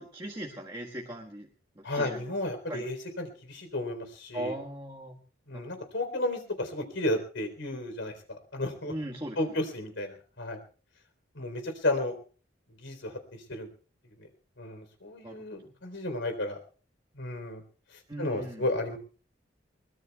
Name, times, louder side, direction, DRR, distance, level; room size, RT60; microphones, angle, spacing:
voice 1, 0.0-1.5 1.8-2.2 2.7-2.9 4.3-5.2 5.5-5.7 8.9-9.4 15.2-15.7 18.1-18.6, right 1 dB, 20° right, -3 dB, 1.5 m, -39 dB
voice 2, 1.8-4.6 5.5-8.9 9.4-10.6 11.3-12.2 12.7-13.7 14.2-14.3 14.6-16.6 17.2-17.6 18.2-19.0, left 1 dB, 75° left, 6 dB, 3.8 m, -33 dB
23.0 x 21.5 x 2.3 m, 0.38 s
head